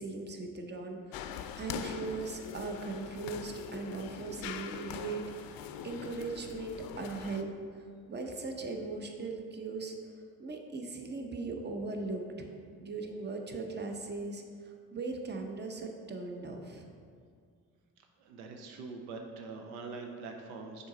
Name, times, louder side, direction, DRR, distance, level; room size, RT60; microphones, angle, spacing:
voice 1, 0.0-10.1 10.4-12.5 12.8-16.9, right 3 dB, 25° right, 3 dB, 0.8 m, -39 dB
sound 1, 1.1-7.4, left 8 dB, 60° left, 0.5 m, -43 dB
voice 2, 18.2-20.9, right 4 dB, 85° right, 3 dB, 0.6 m, -43 dB
6.1 x 3.9 x 4.1 m, 2.2 s
hypercardioid pair, 45°, 40 cm